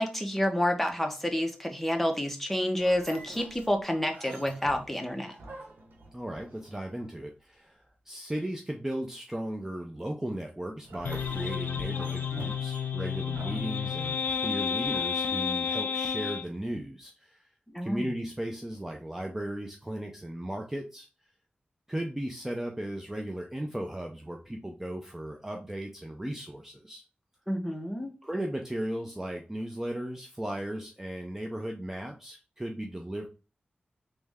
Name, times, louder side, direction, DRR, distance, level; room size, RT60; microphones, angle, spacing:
voice 1, 0.0-5.3 17.7-18.2 27.5-28.1, left 1 dB, 5° left, 3 dB, 0.9 m, -29 dB
sound 1, 2.8-7.1 10.8-15.9, right 2 dB, 90° right, 1.0 m, -48 dB
voice 2, 6.1-17.4 17.8-21.1 21.9-27.0 28.2-33.3, right 1 dB, 10° right, 2 dB, 0.6 m, -36 dB
sound 2, 11.0-16.5, left 7 dB, 90° left, 0.4 m, -31 dB
3.4 x 3.2 x 3.4 m, 0.34 s
wide cardioid pair, 80°, 3 cm